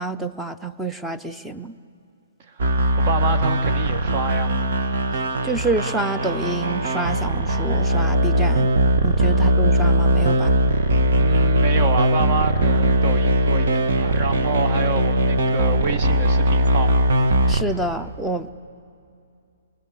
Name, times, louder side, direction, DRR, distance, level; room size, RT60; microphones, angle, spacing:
voice 1, 0.0-1.7 5.4-8.7 9.0-10.5 17.5-18.5, right 2 dB, 5° right, 9 dB, 0.8 m, -27 dB
sound 1, 2.6-17.6, equal, 60° right, 1.5 m, -20 dB
voice 2, 3.0-4.6 11.2-17.0, right 5 dB, 40° right, 9 dB, 1.6 m, -28 dB
28.0 x 23.0 x 8.3 m, 2.5 s
figure-of-eight pair, 125°, 0 cm